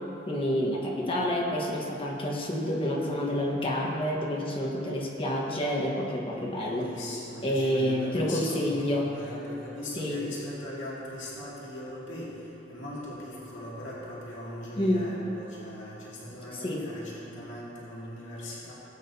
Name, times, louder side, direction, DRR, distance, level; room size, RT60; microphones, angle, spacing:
voice 1, 0.3-6.9 7.4-9.1 10.0-10.2 14.8-15.2 16.6-16.8, equal, 30° left, -2 dB, 1.3 m, -28 dB
voice 2, 6.5-12.3 12.7-18.7, left 1 dB, 70° left, -6 dB, 2.2 m, -40 dB
18.5 x 8.8 x 2.8 m, 3.0 s
head